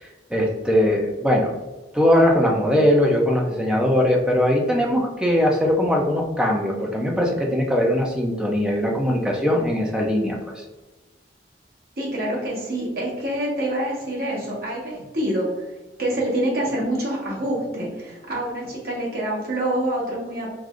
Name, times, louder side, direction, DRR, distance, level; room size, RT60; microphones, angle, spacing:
voice 1, 0.3-1.5 1.9-10.6, equal, 5° right, -1 dB, 0.6 m, -20 dB
voice 2, 12.0-15.7 16.0-20.5, right 1 dB, 60° right, -4 dB, 1.2 m, -26 dB
4.7 x 2.7 x 2.5 m, 1.2 s
head